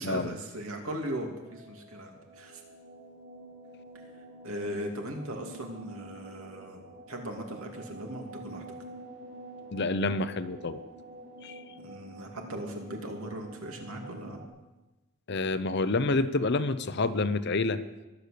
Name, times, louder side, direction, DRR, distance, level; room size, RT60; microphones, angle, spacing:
voice 1, 0.0-2.6 4.4-6.8 7.1-8.6 11.8-14.4, right 1 dB, 75° right, 2 dB, 2.7 m, -38 dB
sound 1, 1.4-14.5, right 1 dB, 45° right, 5.7 m, -48 dB
voice 2, 9.7-10.8 11.4-11.6 15.3-17.8, left 3 dB, 50° left, 12 dB, 0.7 m, -28 dB
22.5 x 8.3 x 6.7 m, 1.1 s
head